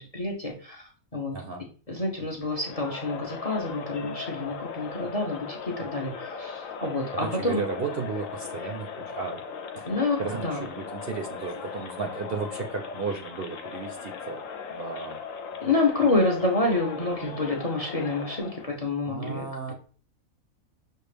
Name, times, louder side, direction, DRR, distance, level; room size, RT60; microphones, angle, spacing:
voice 1, 0.0-1.4 1.9-7.6 9.8-10.2 10.4-10.6 15.6-19.4 19.7-19.8, left 2 dB, 35° left, 1 dB, 0.7 m, -28 dB
voice 2, 1.3-1.6 7.1-9.4 9.7-9.9 10.2-14.4 14.7-15.2 19.1-19.7, right 5 dB, 55° right, 4 dB, 0.7 m, -34 dB
Crowd, 2.5-18.8, left 6 dB, 70° left, 1.1 m, -38 dB
6.4 x 2.4 x 3.3 m, 0.40 s
omnidirectional pair, 1.5 m